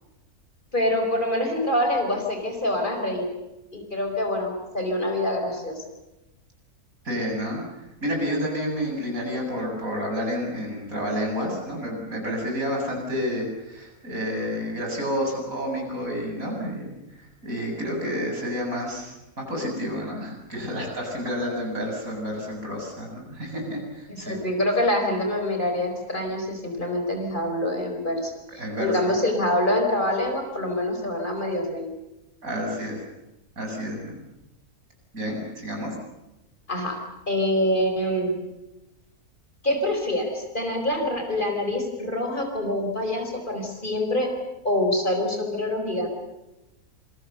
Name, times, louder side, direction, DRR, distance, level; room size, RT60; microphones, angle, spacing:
voice 1, 0.7-3.3 3.7-5.8 24.1-31.9 36.7-37.0 37.3-38.4 39.6-44.3 44.6-46.1, left 1 dB, 30° left, 3 dB, 4.9 m, -25 dB
voice 2, 7.0-7.6 8.0-24.4 28.1-28.2 28.6-29.2 32.4-33.0 33.6-34.2 35.1-35.9, equal, 65° right, 0 dB, 8.3 m, -30 dB
27.5 x 23.0 x 6.9 m, 0.97 s
omnidirectional pair, 1.6 m